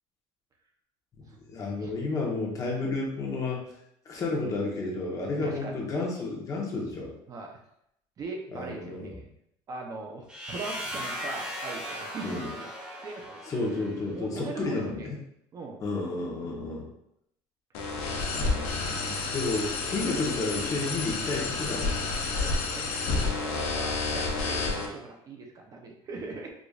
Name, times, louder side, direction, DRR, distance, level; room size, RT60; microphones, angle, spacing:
voice 1, 1.5-3.7 4.0-7.1 8.5-9.1 12.2-12.5 13.5-15.2 15.8-16.9 18.3-22.0, left 3 dB, 35° left, -2 dB, 0.9 m, -31 dB
voice 2, 5.4-5.8 7.3-7.6 8.2-9.3 9.7-12.7 13.0-13.4 14.1-15.1 15.5-15.8 18.1-18.6 22.3-22.9 23.4-26.5, right 3 dB, 35° right, 2 dB, 0.6 m, -40 dB
sound 1, 10.3-14.1, equal, 10° right, 1.3 m, -38 dB
sound 2, 17.7-24.9, left 3 dB, 80° left, 0.7 m, -30 dB
4.9 x 2.5 x 2.4 m, 0.75 s
cardioid pair, 130°, 10 cm